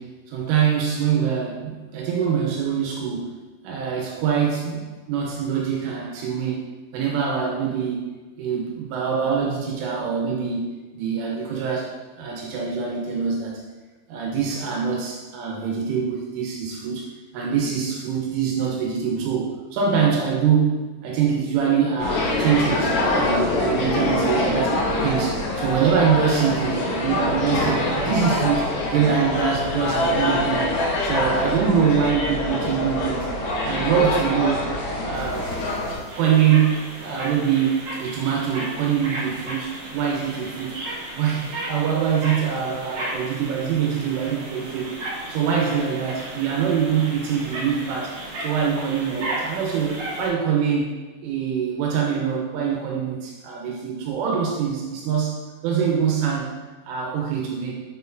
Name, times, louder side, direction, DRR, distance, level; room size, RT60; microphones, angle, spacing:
voice 1, 0.0-3.3 3.6-6.7 6.9-8.1 8.4-10.7 10.9-13.6 14.1-17.1 17.3-24.7 25.0-30.7 31.0-33.3 33.6-34.7 35.0-35.5 35.9-40.8 41.1-44.9 45.3-51.0 51.2-56.5 56.9-57.8, right 7 dB, 80° right, -2 dB, 3.4 m, -24 dB
sound 1, 22.0-36.0, left 2 dB, 80° left, 3.5 m, -24 dB
sound 2, 35.1-50.3, right 1 dB, 55° right, 1.9 m, -34 dB
8.5 x 4.6 x 2.7 m, 1.3 s
omnidirectional pair, 5.9 m